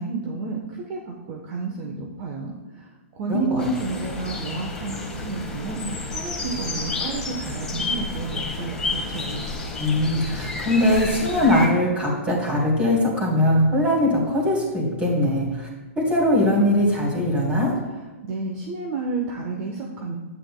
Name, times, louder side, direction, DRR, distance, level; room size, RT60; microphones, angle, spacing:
voice 1, 0.0-2.9 3.1-9.5 18.2-20.2, right 3 dB, 35° right, 0 dB, 1.0 m, -30 dB
voice 2, 3.3-3.6 9.8-15.7 16.0-17.7, left 1 dB, 15° right, -3 dB, 2.8 m, -21 dB
sound 1, 3.6-11.7, left 3 dB, 10° left, 1.4 m, -31 dB
11.0 x 9.3 x 2.2 m, 1.2 s
hypercardioid pair, 150°, 8 cm